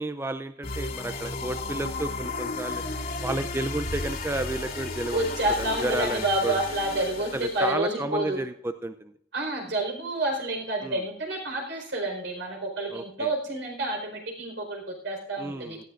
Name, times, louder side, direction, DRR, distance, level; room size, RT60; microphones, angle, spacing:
voice 1, 0.0-2.8 3.2-5.3 5.6-6.6 7.3-9.1 10.8-11.0 12.9-13.3 15.4-15.8, right 2 dB, 15° right, 9 dB, 0.4 m, -32 dB
sound 1, 0.6-7.7, left 3 dB, 50° left, 2.3 m, -33 dB
voice 2, 5.1-8.4 9.3-15.8, right 1 dB, 70° right, 2 dB, 4.5 m, -29 dB
17.5 x 14.0 x 2.5 m, 0.69 s
head